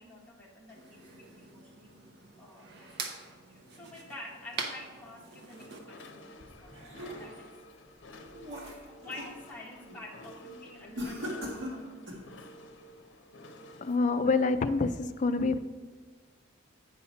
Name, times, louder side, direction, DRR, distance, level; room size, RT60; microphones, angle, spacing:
voice 1, 0.0-2.0 2.4-3.0 3.5-7.6 8.7-12.3, left 2 dB, 10° left, -4 dB, 1.3 m, -49 dB
sound 1, 0.7-5.8, right 4 dB, 55° right, 0.8 m, -43 dB
sound 2, 5.5-14.2, left 1 dB, 70° left, 0.7 m, -51 dB
sound 3, 6.4-7.5 8.0-9.4 9.8-10.1 11.0-12.3, left 1 dB, 75° right, 1.7 m, -40 dB
voice 2, 13.8-15.6, left 3 dB, 40° left, 10 dB, 0.4 m, -27 dB
8.9 x 4.2 x 5.6 m, 1.4 s
head